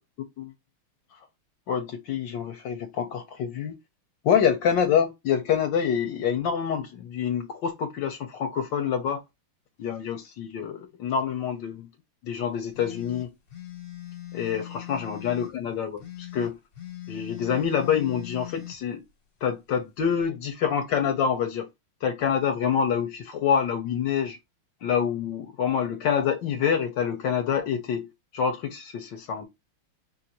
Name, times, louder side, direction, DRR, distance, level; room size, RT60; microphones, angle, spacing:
voice 1, 1.7-3.7 4.2-9.2 9.8-11.9 12.2-13.3 14.3-16.6 17.1-19.0 19.4-21.7 22.0-24.4 24.8-29.5, left 7 dB, 65° left, 1.3 m, -26 dB
sound 1, 12.7-15.5 16.0-18.8, left 14 dB, 45° left, 1.4 m, -40 dB
5.2 x 2.5 x 2.8 m
omnidirectional pair, 2.4 m